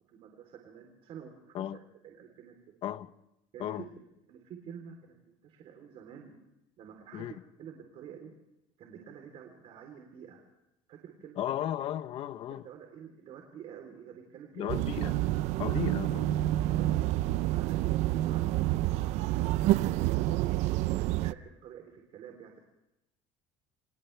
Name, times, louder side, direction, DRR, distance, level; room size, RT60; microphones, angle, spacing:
voice 1, 0.1-1.8 2.0-2.8 3.5-3.9 4.3-6.3 6.8-8.3 8.8-10.4 10.9-11.5 12.5-14.8 15.7-15.8 16.4-20.4 20.9-22.6, right 8 dB, 55° right, 3.7 m, -49 dB
voice 2, 11.4-12.7 14.5-15.1 15.6-16.3, left 11 dB, 50° left, 0.9 m, -35 dB
sound 1, 14.7-21.3, right 15 dB, 70° right, 0.6 m, -28 dB
29.5 x 26.0 x 3.4 m
cardioid pair, 150°, 12 cm